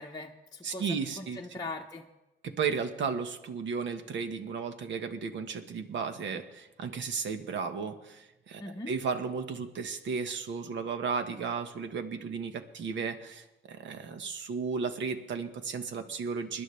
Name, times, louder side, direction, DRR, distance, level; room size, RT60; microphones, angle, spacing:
voice 1, 0.0-2.1 8.6-8.9, left 2 dB, 20° left, -1 dB, 0.9 m, -41 dB
voice 2, 0.6-1.4 2.4-8.6 8.9-16.6, right 5 dB, 70° right, 8 dB, 1.4 m, -34 dB
21.5 x 11.0 x 3.3 m, 1.0 s
cardioid pair, 90°, 20 cm